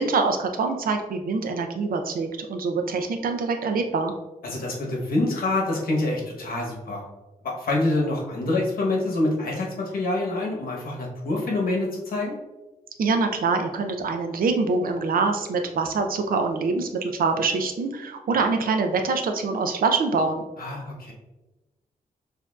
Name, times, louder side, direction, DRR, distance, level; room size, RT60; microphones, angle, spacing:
voice 1, 0.0-4.1 13.0-20.4, right 4 dB, 75° right, 5 dB, 0.5 m, -24 dB
voice 2, 4.4-7.0 7.4-12.4 20.6-21.1, left 2 dB, 80° left, -1 dB, 1.1 m, -26 dB
6.5 x 2.7 x 2.3 m, 1.1 s
wide cardioid pair, 155°, 15 cm